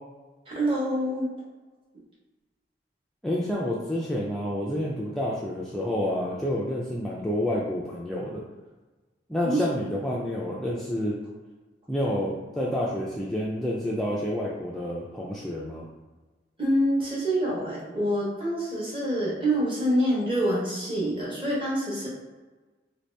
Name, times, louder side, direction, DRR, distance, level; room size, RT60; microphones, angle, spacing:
voice 1, 0.5-1.3 9.4-9.6 16.6-22.1, right 1 dB, 30° right, -5 dB, 1.0 m, -26 dB
voice 2, 3.2-8.4 9.3-11.2 11.9-15.9, left 1 dB, ahead, -6 dB, 0.3 m, -29 dB
3.0 x 2.7 x 3.2 m, 1.2 s
head